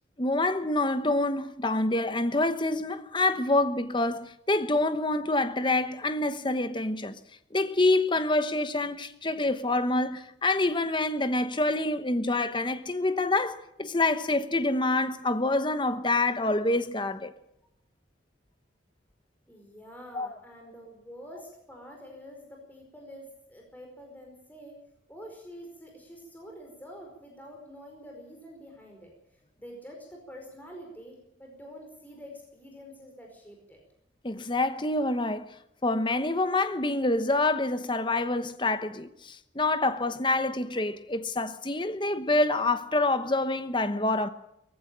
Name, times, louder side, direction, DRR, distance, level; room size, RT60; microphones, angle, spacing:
voice 1, 0.2-7.2 7.5-17.3 20.1-20.3 34.2-35.4 35.8-44.3, left 2 dB, 25° left, 1.0 m, -27 dB
voice 2, 19.5-24.7 25.1-29.1 29.6-33.8, equal, 10° left, 4.9 m, -47 dB
19.5 x 15.5 x 8.8 m
head